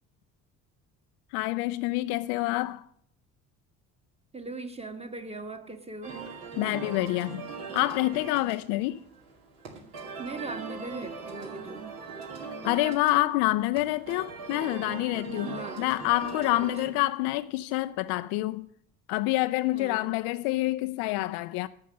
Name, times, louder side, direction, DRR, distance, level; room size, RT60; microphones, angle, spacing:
voice 1, 1.3-2.8 6.6-9.0 12.6-18.7 19.1-21.7, left 18 dB, 60° left, 0.5 m, -27 dB
voice 2, 4.3-6.2 10.2-11.9 15.4-15.9 16.6-16.9 19.7-20.1, right 3 dB, 15° right, 1.5 m, -39 dB
sound 1, 6.0-16.9, right 5 dB, 65° right, 2.5 m, -40 dB
10.5 x 7.5 x 6.5 m
figure-of-eight pair, 50°, 45 cm